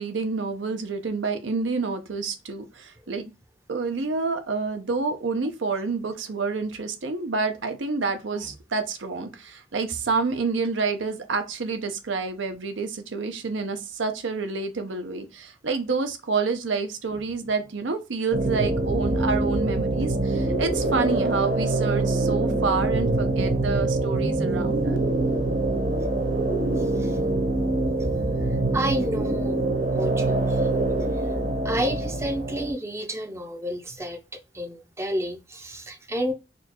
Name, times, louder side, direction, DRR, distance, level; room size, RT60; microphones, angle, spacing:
voice 1, 0.0-3.3 3.7-25.0, right 4 dB, 85° right, 0.7 m, -28 dB
sound 1, 18.3-32.7, right 2 dB, 45° right, 1.0 m, -24 dB
voice 2, 26.8-27.2 28.4-30.8 31.2-31.3 31.6-36.3, equal, 15° right, 0.5 m, -31 dB
4.1 x 2.4 x 2.9 m
head